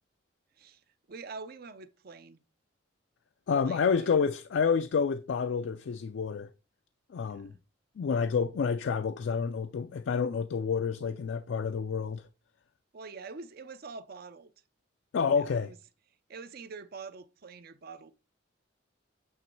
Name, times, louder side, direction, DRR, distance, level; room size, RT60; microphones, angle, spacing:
voice 1, 0.6-2.4 3.6-4.2 7.2-7.6 12.9-14.5 15.3-15.8 16.3-18.1, right 4 dB, 55° right, 0.5 m, -45 dB
voice 2, 3.5-6.5 7.1-7.5 8.0-12.2 15.1-15.7, left 6 dB, 70° left, 0.4 m, -29 dB
8.9 x 3.1 x 4.5 m
head